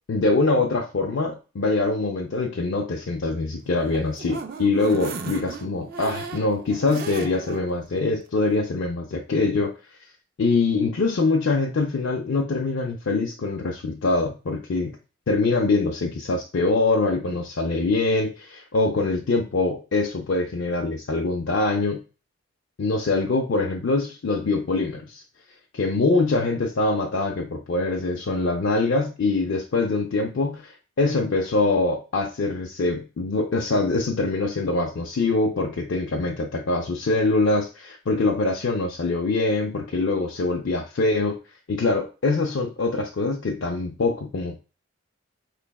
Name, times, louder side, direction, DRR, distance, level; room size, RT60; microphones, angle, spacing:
voice 1, 0.1-10.0 10.4-15.0 15.3-22.0 22.8-25.2 25.7-41.4 41.7-44.6, left 3 dB, 65° left, 0 dB, 0.5 m, -24 dB
sound 1, 3.7-7.6 8.0-8.1 8.5-8.6, right 4 dB, 45° right, 0.4 m, -36 dB
4.6 x 3.1 x 2.2 m, 0.32 s
head